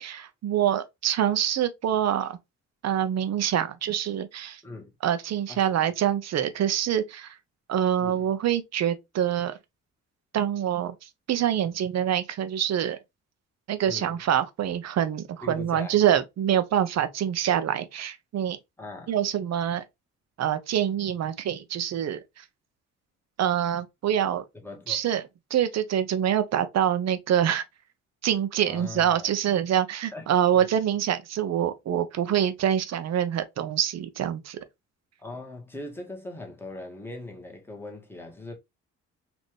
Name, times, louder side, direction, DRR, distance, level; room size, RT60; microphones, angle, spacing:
voice 1, 0.0-2.4 2.8-4.6 5.0-7.3 7.7-9.5 10.3-13.0 13.7-18.6 19.1-19.8 20.4-22.4 23.4-24.4 24.9-25.2 25.5-27.6 28.2-34.6, right 10 dB, 60° right, 0.7 m, -25 dB
voice 2, 13.8-14.2 15.4-16.0 18.8-19.1 24.6-25.0 28.7-29.3 30.1-30.2 30.5-30.6 35.2-38.5, left 2 dB, 5° left, 1.6 m, -40 dB
4.3 x 2.8 x 3.2 m
cardioid pair, 90°, 30 cm